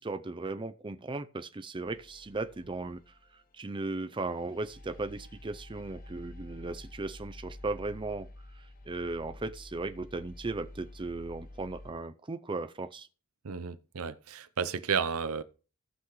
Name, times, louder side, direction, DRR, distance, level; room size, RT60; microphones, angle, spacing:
voice 1, 0.0-8.3 8.6-13.1, right 3 dB, 20° right, 0.5 m, -37 dB
sound 1, 1.8-3.6 4.2-11.9, left 1 dB, 40° left, 1.2 m, -49 dB
voice 2, 13.4-15.4, right 6 dB, 70° right, 0.7 m, -32 dB
17.5 x 5.8 x 3.1 m
head